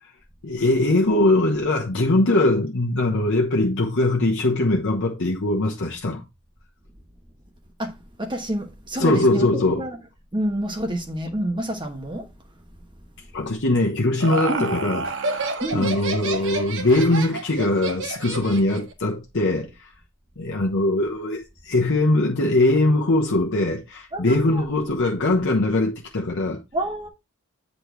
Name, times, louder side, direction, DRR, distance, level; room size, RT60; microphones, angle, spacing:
voice 1, 0.4-6.2 9.0-9.8 13.3-19.9 20.4-26.6, left 2 dB, 60° left, 1.1 m, -21 dB
voice 2, 7.8-10.0 10.3-12.3 14.5-14.6 15.6-15.9 24.1-24.6 26.7-27.1, right 1 dB, 20° right, 1.2 m, -28 dB
Laughter, 13.8-18.9, right 3 dB, 60° right, 1.5 m, -29 dB
8.6 x 4.2 x 4.5 m
head